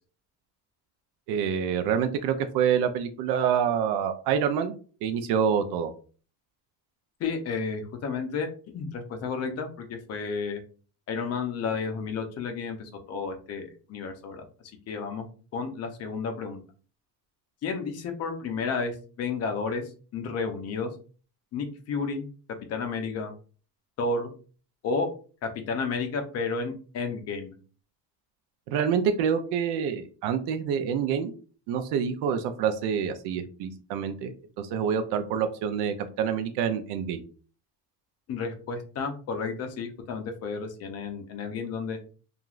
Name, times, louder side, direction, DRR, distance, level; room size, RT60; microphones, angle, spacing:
voice 1, 1.3-4.7 5.0-5.9 28.7-31.3 31.7-34.3 34.6-37.2, right 7 dB, 85° right, 8 dB, 0.5 m, -27 dB
voice 2, 7.2-8.5 8.7-10.6 11.1-14.4 14.9-15.3 15.5-16.6 17.6-20.9 21.5-23.3 24.0-24.3 24.8-25.1 25.4-27.5 38.3-42.0, left 4 dB, 40° left, 5 dB, 0.5 m, -32 dB
3.0 x 2.4 x 2.3 m, 0.39 s
cardioid pair, 165°, 39 cm